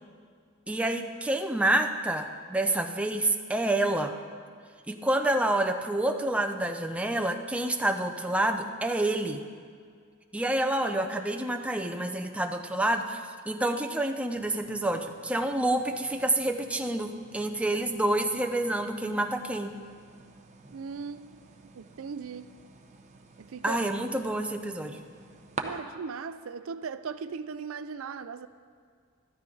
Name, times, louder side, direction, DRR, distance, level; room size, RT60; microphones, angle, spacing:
voice 1, 0.7-4.1 4.9-9.4 10.3-19.7 23.6-25.0, right 1 dB, 5° right, 4 dB, 0.5 m, -28 dB
sound 1, 14.3-25.6, right 4 dB, 35° right, 0.8 m, -48 dB
voice 2, 20.7-21.4 21.7-22.5 23.4-23.8 25.6-28.5, right 5 dB, 85° right, 13 dB, 0.4 m, -38 dB
13.0 x 12.5 x 3.9 m, 2.1 s
head